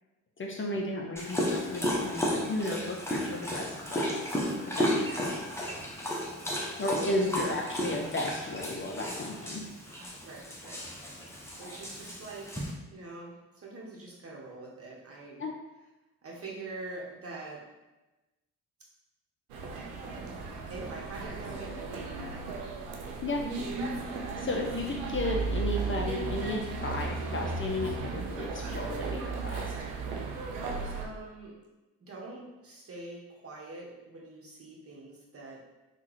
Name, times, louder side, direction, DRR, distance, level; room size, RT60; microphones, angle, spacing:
voice 1, 0.4-4.1 4.8-5.4 6.8-9.6 15.4-15.5 23.2-23.5 24.4-29.7, left 2 dB, 30° left, 0 dB, 0.6 m, -34 dB
Dog, 1.2-12.7, equal, 5° left, 0.9 m, -33 dB
voice 2, 6.1-6.4 7.3-7.6 10.2-10.8 11.6-12.6 12.9-15.4 16.2-17.6 20.7-22.7 30.9-31.5 32.1-35.6, right 2 dB, 35° right, -4 dB, 1.2 m, -44 dB
sound 1, 19.5-31.1, right 4 dB, 85° right, 0.5 m, -35 dB
3.6 x 2.4 x 3.1 m, 1.1 s
hypercardioid pair, 40°, 39 cm